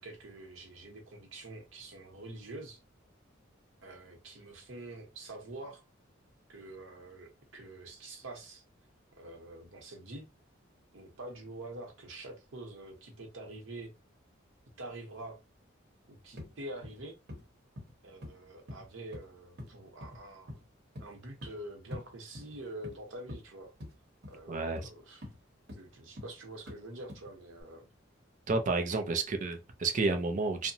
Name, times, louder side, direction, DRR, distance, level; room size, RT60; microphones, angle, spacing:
voice 1, 0.0-2.8 3.8-5.8 6.5-8.6 9.2-10.2 10.9-13.9 14.8-15.4 16.1-17.2 18.0-20.5 21.0-23.7 24.3-25.2 25.8-27.8 28.9-29.2, right 2 dB, 80° right, 0.9 m, -46 dB
sound 1, 16.4-16.5 16.8-17.0 17.3-17.5 17.8-17.9 18.2-18.3 18.7-19.3 19.6-19.7 20.0-20.2 20.5-20.7 21.0-21.1 21.4-21.6 21.9-22.1 22.3-23.0 23.3-23.4 23.8-23.9 24.2-24.4 24.8-24.9 25.2-25.4 25.7-25.8 26.2-26.3 26.7-26.8 27.1-27.3 27.6-27.7, left 1 dB, 60° right, 1.0 m, -45 dB
voice 2, 24.5-24.9 28.5-30.7, right 3 dB, 40° right, 0.4 m, -31 dB
2.7 x 2.1 x 2.7 m
head